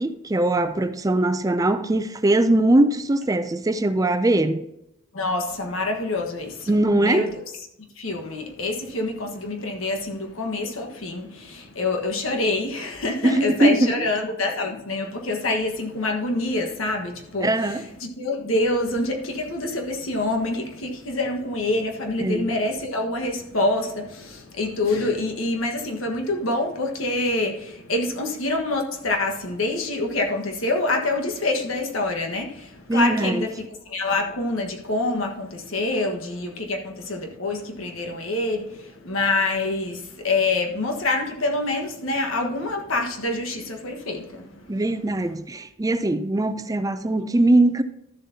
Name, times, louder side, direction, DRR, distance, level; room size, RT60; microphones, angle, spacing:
voice 1, 0.0-4.7 6.7-7.3 13.2-14.1 17.4-17.9 22.2-22.5 32.9-33.5 44.7-47.8, right 1 dB, 15° right, 0.5 m, -21 dB
voice 2, 5.1-7.3 8.0-44.8, left 2 dB, 90° left, 1.5 m, -26 dB
12.5 x 7.3 x 2.8 m
head